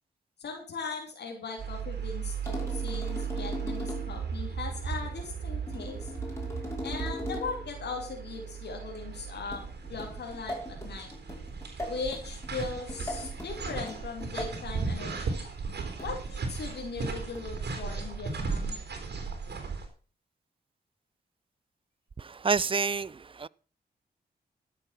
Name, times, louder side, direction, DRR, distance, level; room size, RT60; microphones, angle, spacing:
voice 1, 0.4-6.1 6.8-11.1 11.9-15.4 16.0-18.8, left 4 dB, 80° left, 3.2 m, -39 dB
sound 1, 1.6-19.9, right 5 dB, 80° right, 3.6 m, -36 dB
sound 2, 2.5-4.2 5.7-7.7 9.5-14.7 16.0-16.3 17.3-17.7, left 2 dB, 15° left, 5.9 m, -40 dB
voice 2, 22.2-23.5, right 5 dB, 30° right, 0.5 m, -29 dB
13.0 x 8.3 x 5.9 m
cardioid pair, 70°, 17 cm